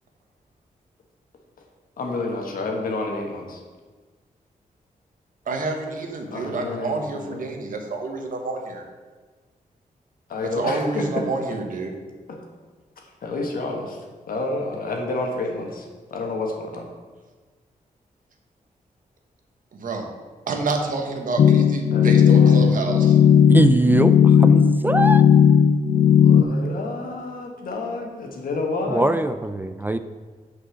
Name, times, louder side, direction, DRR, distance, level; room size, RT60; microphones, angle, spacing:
voice 1, 2.0-3.6 6.3-7.5 10.3-11.2 12.3-12.5 13.0-14.0 14.3-16.9 21.9-22.9 25.9-29.2, left 2 dB, 80° left, 1 dB, 1.5 m, -29 dB
voice 2, 5.5-8.8 10.5-11.9 19.7-20.1 20.5-23.2, right 3 dB, 70° right, 3 dB, 1.3 m, -28 dB
sound 1, 21.4-26.4, left 8 dB, 60° left, 0.4 m, -15 dB
voice 3, 23.5-25.2 28.9-30.0, right 1 dB, 15° right, 10 dB, 0.3 m, -21 dB
6.2 x 5.4 x 6.4 m, 1.4 s
cardioid pair, 100°, 14 cm